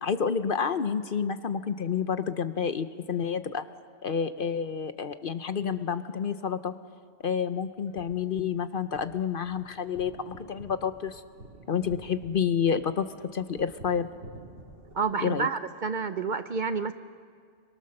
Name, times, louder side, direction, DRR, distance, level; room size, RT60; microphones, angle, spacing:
voice 1, 0.0-3.7 4.0-6.7 7.2-11.2 11.7-14.1 15.2-15.5, left 7 dB, 55° left, 11 dB, 0.9 m, -29 dB
sound 1, 7.7-14.9, right 1 dB, 80° right, 3.4 m, -50 dB
voice 2, 14.9-16.9, right 5 dB, 45° right, 11 dB, 0.8 m, -29 dB
28.0 x 24.0 x 6.6 m, 2.1 s
omnidirectional pair, 1.2 m